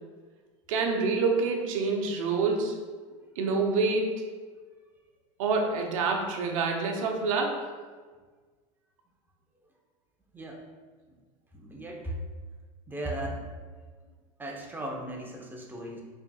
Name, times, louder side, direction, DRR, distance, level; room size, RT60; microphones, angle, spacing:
voice 1, 0.7-2.8 3.4-4.3 5.4-7.7, right 4 dB, 75° right, 2 dB, 0.8 m, -27 dB
voice 2, 11.5-12.1 12.9-13.4 14.4-16.0, right 1 dB, 10° right, -1 dB, 0.8 m, -37 dB
4.6 x 3.5 x 2.3 m, 1.5 s
hypercardioid pair, 95°, 17 cm